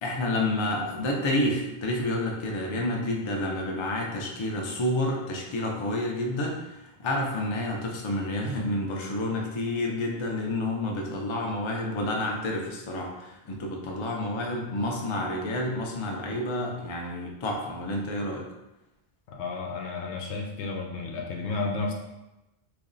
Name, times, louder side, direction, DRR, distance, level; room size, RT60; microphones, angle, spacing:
voice 1, 0.0-18.4, left 1 dB, 40° left, 0 dB, 0.4 m, -29 dB
voice 2, 19.3-21.9, left 3 dB, 90° left, 1 dB, 0.9 m, -32 dB
3.1 x 2.5 x 3.8 m, 0.98 s
omnidirectional pair, 1.1 m